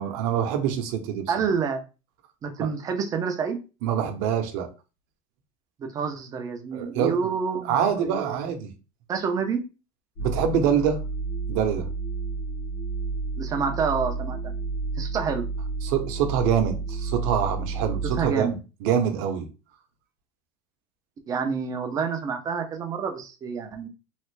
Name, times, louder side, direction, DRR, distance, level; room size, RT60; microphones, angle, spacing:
voice 1, 0.0-1.3 3.8-4.7 6.7-7.1 7.7-8.7 10.2-11.0 11.5-11.9 15.8-19.5, right 8 dB, 50° right, 0.8 m, -25 dB
voice 2, 1.3-1.8 2.4-3.6 5.8-8.4 9.1-9.6 13.4-14.4 15.0-15.5 18.0-18.6 21.3-23.9, right 6 dB, 20° right, 0.4 m, -28 dB
sound 1, 10.2-18.3, right 4 dB, 70° left, 1.3 m, -31 dB
3.2 x 2.4 x 3.2 m
cardioid pair, 170°, 19 cm